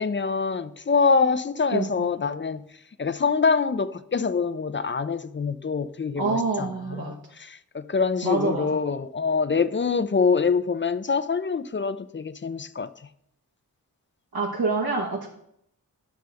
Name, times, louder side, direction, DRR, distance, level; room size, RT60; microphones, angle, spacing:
voice 1, 0.0-2.6 3.0-12.9, left 5 dB, 35° left, 0.5 m, -25 dB
voice 2, 6.2-7.1 8.2-8.8 14.3-15.3, right 3 dB, 85° right, 1.3 m, -26 dB
12.5 x 6.4 x 3.5 m
wide cardioid pair, 75°, 36 cm